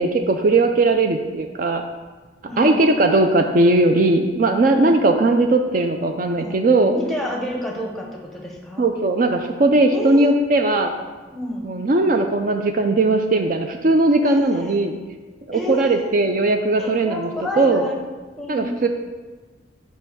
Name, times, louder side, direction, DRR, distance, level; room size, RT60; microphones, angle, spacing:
voice 1, 0.0-1.8 2.6-6.9 8.8-10.9 11.6-14.9 15.5-17.3 17.6-17.8 18.5-18.9, right 2 dB, 45° right, 5 dB, 0.4 m, -18 dB
voice 2, 2.5-2.8 4.7-5.0 6.3-6.7 6.9-8.9 9.9-10.3 11.3-11.7 14.2-14.8 15.5-16.0 16.8-18.0 18.4-18.8, equal, ahead, -1 dB, 1.0 m, -29 dB
5.4 x 4.5 x 6.2 m, 1.3 s
head